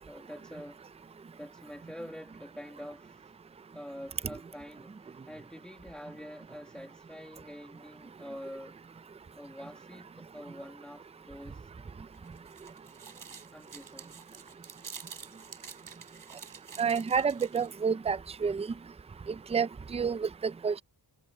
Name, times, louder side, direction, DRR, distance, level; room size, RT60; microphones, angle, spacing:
voice 1, 0.1-3.3 3.7-8.8 9.3-11.7 13.2-14.2, equal, ahead, 1.7 m, -46 dB
sound 1, 12.1-17.8, right 6 dB, 50° right, 6.9 m, -48 dB
voice 2, 16.8-18.7 19.5-20.8, right 6 dB, 15° right, 0.4 m, -29 dB
wide cardioid pair, 140°, 43 cm